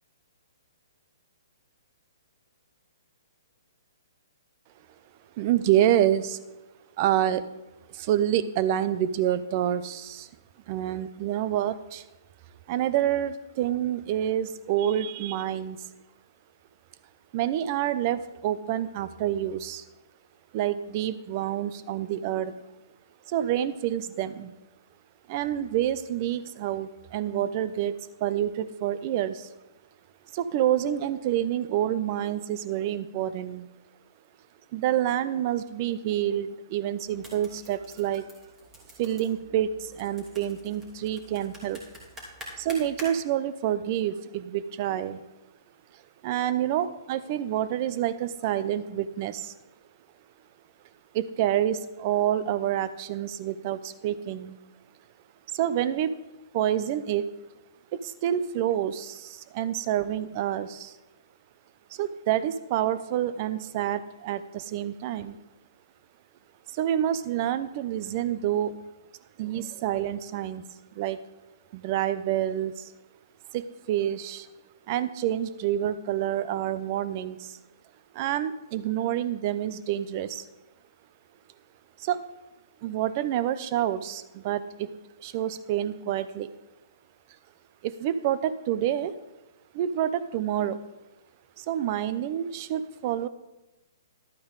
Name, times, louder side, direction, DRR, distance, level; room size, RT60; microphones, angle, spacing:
voice 1, 5.4-6.4 7.0-7.5 7.9-10.3 10.7-12.0 12.7-15.9 17.3-19.8 20.5-22.6 23.3-24.5 25.3-29.5 30.3-33.7 34.7-38.3 39.0-41.8 42.6-45.2 46.2-49.6 51.1-54.6 55.5-56.2 56.5-57.3 57.9-61.0 61.9-65.4 66.7-68.8 69.4-70.6 70.9-71.2 71.7-72.9 73.5-74.5 74.9-77.6 78.1-80.4 82.0-82.2 82.8-84.9 85.2-86.5 87.8-89.1 89.7-90.8 91.6-93.3, right 11 dB, 40° right, 14 dB, 0.6 m, -28 dB
sound 1, 37.0-43.1, equal, 15° right, 2.8 m, -47 dB
12.0 x 8.6 x 4.0 m, 1.0 s
hypercardioid pair, 140°, 2 cm